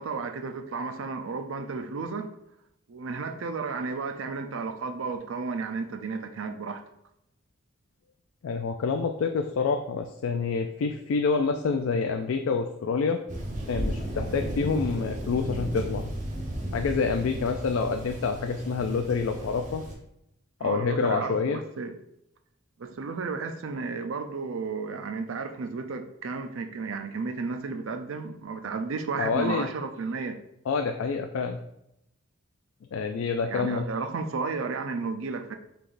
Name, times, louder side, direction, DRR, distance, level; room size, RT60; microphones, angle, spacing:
voice 1, 0.0-2.3 2.9-6.8 20.6-21.9 22.8-30.4 33.4-35.5, right 4 dB, 75° right, 0.5 m, -33 dB
voice 2, 8.4-13.2 13.7-16.1 16.7-19.8 20.6-21.6 29.2-29.7 30.7-31.6 32.9-33.8, left 5 dB, 80° left, 0.3 m, -27 dB
Thunder, 13.3-20.0, right 1 dB, 35° right, 0.8 m, -34 dB
5.8 x 3.4 x 2.5 m
head